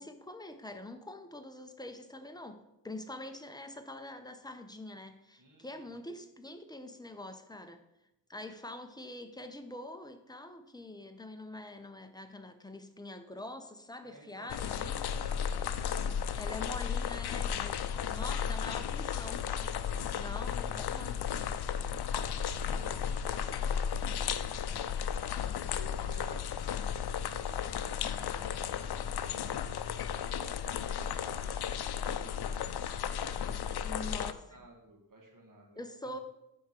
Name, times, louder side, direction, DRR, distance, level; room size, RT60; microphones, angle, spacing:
voice 1, 0.0-7.8 8.3-15.0 16.3-17.8 18.0-19.5 20.2-21.2 33.8-34.4 35.8-36.2, left 1 dB, 10° left, 7 dB, 0.6 m, -45 dB
voice 2, 5.4-6.1 14.0-16.6 17.5-18.7 19.8-20.6 22.5-24.6 25.5-29.5 30.2-35.8, right 1 dB, 55° right, 0 dB, 1.7 m, -55 dB
sound 1, 14.5-34.3, left 8 dB, 85° left, 0.5 m, -34 dB
sound 2, 18.3-30.1, left 5 dB, 55° left, 2.1 m, -53 dB
9.4 x 3.7 x 5.7 m, 0.89 s
wide cardioid pair, 110°, 38 cm